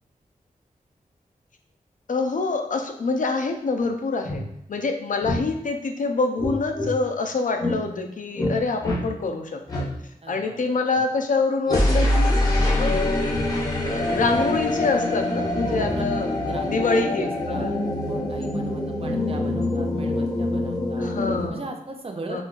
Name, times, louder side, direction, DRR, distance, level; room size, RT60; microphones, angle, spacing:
voice 1, 2.1-4.4 4.7-9.9 10.3-12.4 12.8-13.4 13.8-17.7 21.0-21.6 22.3-22.4, left 3 dB, 65° left, 5 dB, 0.5 m, -26 dB
sound 1, 3.8-3.9 4.2-4.4 5.2-5.4 6.4-6.9 7.6-7.8 8.4-8.6 8.8-9.0 9.7-9.9 11.7-21.5, left 1 dB, 25° left, 0.9 m, -24 dB
voice 2, 10.2-10.6 11.0-11.1 15.6-16.0 16.4-21.1 21.5-22.4, right 3 dB, 40° right, 3 dB, 0.5 m, -37 dB
4.2 x 2.3 x 2.4 m, 0.80 s
wide cardioid pair, 65°, 15 cm